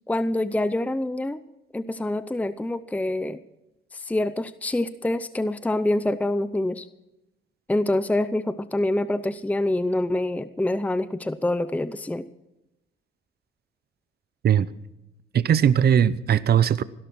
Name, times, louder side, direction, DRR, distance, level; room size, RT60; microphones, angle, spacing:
voice 1, 0.1-1.4 1.7-3.4 3.9-6.9 7.7-12.3, left 1 dB, 5° left, 0.7 m, -26 dB
voice 2, 15.3-16.8, right 9 dB, 55° right, 0.7 m, -19 dB
16.5 x 12.5 x 6.1 m
cardioid pair, 90°, 20 cm